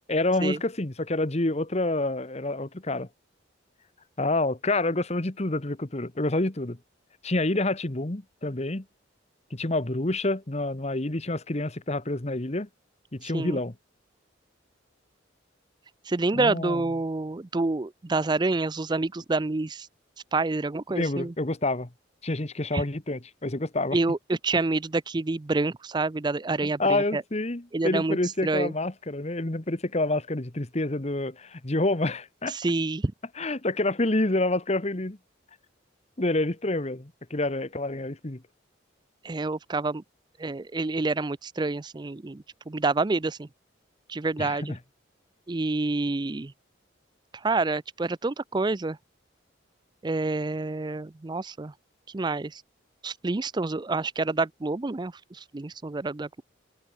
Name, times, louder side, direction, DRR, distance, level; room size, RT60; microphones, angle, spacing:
voice 1, 0.1-3.1 4.2-6.8 7.2-8.8 9.5-12.7 13.1-13.7 16.3-16.8 20.9-21.9 22.2-24.0 26.8-32.6 33.3-35.2 36.2-38.4 44.4-44.8, left 2 dB, 35° left, 1.3 m, -28 dB
voice 2, 13.2-13.6 16.0-19.9 20.3-21.3 22.7-22.8 23.9-27.2 27.7-28.2 28.4-28.7 32.5-33.1 39.2-40.0 40.4-43.5 44.1-44.8 45.5-46.5 47.3-49.0 50.0-51.7 52.1-52.6 53.0-56.4, right 3 dB, 20° right, 0.5 m, -28 dB
head